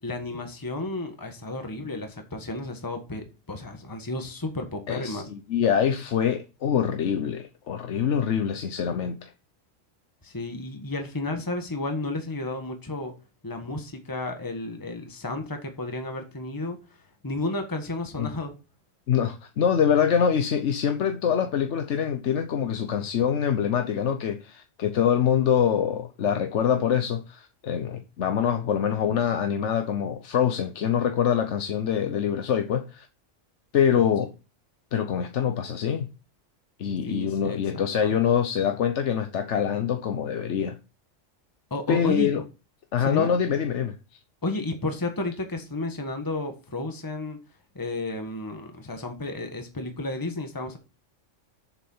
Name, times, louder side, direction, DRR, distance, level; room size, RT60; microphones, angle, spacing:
voice 1, 0.0-5.3 10.2-13.1 13.4-16.8 17.2-18.5 37.1-38.2 41.7-42.3 43.0-43.3 44.4-47.4 47.7-50.8, left 2 dB, 15° left, 1.4 m, -32 dB
voice 2, 4.9-9.3 18.2-18.3 19.1-33.1 33.7-34.3 34.9-36.1 36.8-40.8 41.9-42.4 42.9-44.0, left 8 dB, 65° left, 1.1 m, -25 dB
7.3 x 7.2 x 5.6 m
omnidirectional pair, 1.3 m